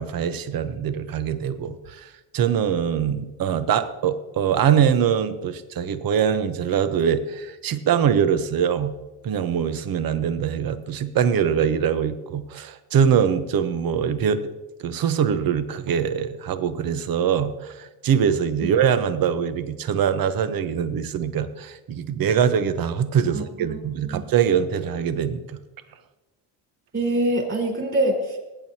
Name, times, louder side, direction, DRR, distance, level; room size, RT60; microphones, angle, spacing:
voice 1, 0.0-8.9 9.2-14.4 14.8-25.6, right 8 dB, 50° right, 11 dB, 1.0 m, -23 dB
voice 2, 23.3-23.8 24.0-24.2 26.9-28.4, right 1 dB, 30° right, 0 dB, 4.7 m, -24 dB
19.0 x 9.0 x 2.9 m, 1.1 s
cardioid pair, 85°, 43 cm